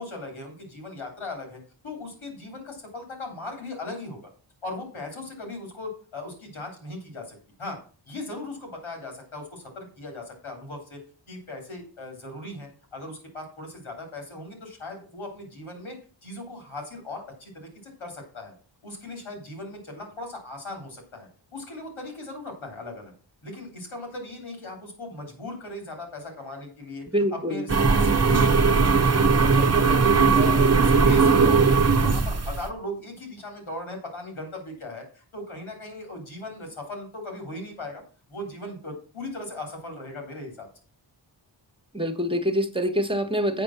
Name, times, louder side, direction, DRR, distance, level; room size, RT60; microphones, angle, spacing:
voice 1, 0.0-4.2 4.6-7.8 8.1-11.0 11.3-16.0 16.2-18.5 18.8-23.1 23.4-27.0 27.3-29.1 29.4-38.0 38.3-40.7, left 2 dB, 90° left, 2 dB, 3.5 m, -38 dB
voice 2, 27.1-27.6 41.9-43.6, equal, 10° right, 7 dB, 1.4 m, -25 dB
sound 1, 27.7-32.7, right 4 dB, 30° right, 0.9 m, -19 dB
8.1 x 5.3 x 5.8 m, 0.38 s
cardioid pair, 60°, 48 cm